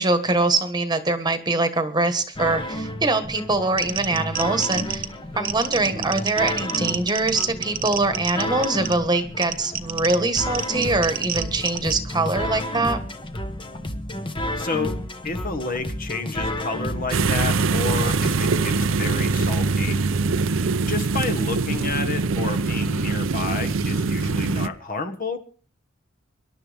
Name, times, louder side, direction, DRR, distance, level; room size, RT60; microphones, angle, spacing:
voice 1, 0.0-5.1 5.4-13.0 18.2-18.6, right 2 dB, 20° right, 9 dB, 1.4 m, -23 dB
sound 1, 2.4-18.3, left 1 dB, 25° left, 1.2 m, -32 dB
sound 2, 3.8-12.0, right 9 dB, 45° right, 1.0 m, -31 dB
voice 2, 5.9-6.2 14.6-15.0 15.2-20.0 20.9-25.4, left 3 dB, 45° left, 7 dB, 1.5 m, -30 dB
sound 3, 17.1-24.7, right 4 dB, 75° right, 0.7 m, -23 dB
25.0 x 11.5 x 3.5 m, 0.40 s
head